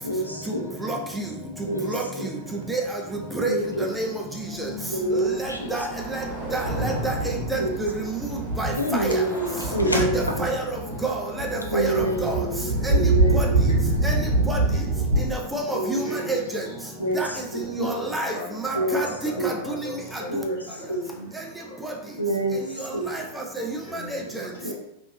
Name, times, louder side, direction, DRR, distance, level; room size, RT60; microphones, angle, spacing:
voice 1, 0.0-0.7 1.7-1.9 2.2-2.3 3.5-3.9 4.9-5.9 7.6-8.0 8.8-10.5 11.7-14.0 15.7-16.4 17.0-17.9 18.7-19.0 19.4-19.6 20.3-20.6 20.9-21.1 22.2-22.6 22.9-23.1 24.6-24.7, right 1 dB, 85° left, 1 dB, 0.5 m, -27 dB
sound 1, 3.4-17.5, equal, 40° left, 1.1 m, -43 dB
voice 2, 3.4-4.1 5.1-5.8 6.1-6.2 6.5-7.1 7.5-7.9 8.6-8.7 9.0-9.2 9.9-10.5 11.0-11.5 11.7-11.9 12.2-12.4 13.3-13.5 14.0-14.1 14.5-14.6 15.3-16.0 16.3-16.6 17.2-17.3 17.8-18.3 18.6-19.1 19.4-19.5 23.1-23.2 23.9-24.0, right 2 dB, 5° right, 0 dB, 0.5 m, -28 dB
Thunder, 5.5-15.2, right 2 dB, 75° right, 1.1 m, -25 dB
voice 3, 16.0-16.4 16.7-16.8 18.3-22.1 23.8-24.7, left 1 dB, 60° left, -2 dB, 0.8 m, -39 dB
3.0 x 2.6 x 2.7 m, 0.82 s
figure-of-eight pair, 90°, 0 cm